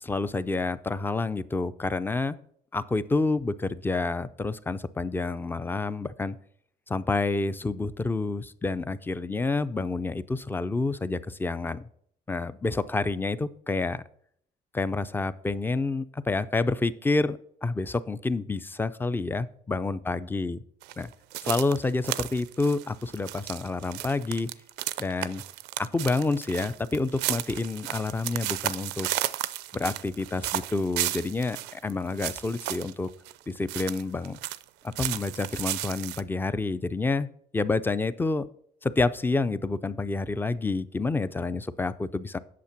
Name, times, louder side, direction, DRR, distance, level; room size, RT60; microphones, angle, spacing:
voice 1, 0.0-2.4 2.7-6.4 6.9-11.8 12.3-14.0 14.7-20.6 21.0-21.1 21.4-24.5 25.0-25.4 25.8-29.1 29.7-33.1 33.5-34.4 34.8-37.3 37.5-38.5 38.8-42.4, left 3 dB, 10° left, 15 dB, 0.4 m, -28 dB
sound 1, 20.8-34.6 34.9-36.2, right 16 dB, 90° right, 0.5 m, -33 dB
8.4 x 6.7 x 5.9 m, 0.65 s
cardioid pair, 110°, 17 cm